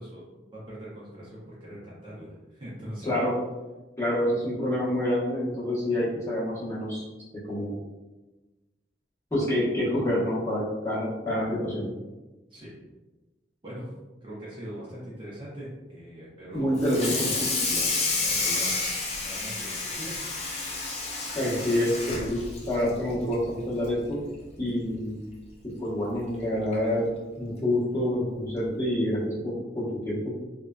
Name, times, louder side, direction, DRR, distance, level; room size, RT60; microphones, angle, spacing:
voice 1, 0.0-3.2 12.5-12.8 13.6-13.9 14.2-16.7 17.1-20.1, equal, 25° right, -8 dB, 0.6 m, -42 dB
voice 2, 3.0-3.3 4.0-7.0 7.5-7.8 9.3-11.9 16.5-17.3 21.3-24.2 24.6-25.2 25.8-27.1 27.4-30.3, left 1 dB, 15° left, -11 dB, 1.0 m, -27 dB
Water tap faucet / Sink (filling or washing), 16.8-23.4 23.8-24.1 24.4-24.5 24.9-25.0 26.2-26.3 26.7-26.9, left 3 dB, 35° left, 0.4 m, -30 dB
2.6 x 2.2 x 2.2 m, 1.1 s
head